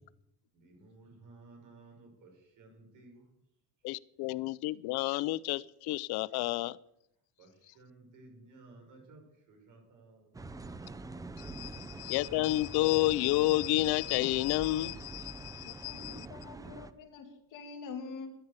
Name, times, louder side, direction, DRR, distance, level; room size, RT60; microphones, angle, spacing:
voice 1, 0.5-3.2 7.4-10.3, right 3 dB, 55° right, 3 dB, 5.8 m, -56 dB
voice 2, 3.8-6.8 11.4-16.3, left 17 dB, 80° left, 20 dB, 0.6 m, -30 dB
sound 1, 10.3-16.9, right 3 dB, 10° right, 0.5 m, -45 dB
voice 3, 15.6-18.3, left 4 dB, 55° left, 3 dB, 2.7 m, -45 dB
12.5 x 11.0 x 8.1 m, 0.81 s
cardioid pair, 170°, 38 cm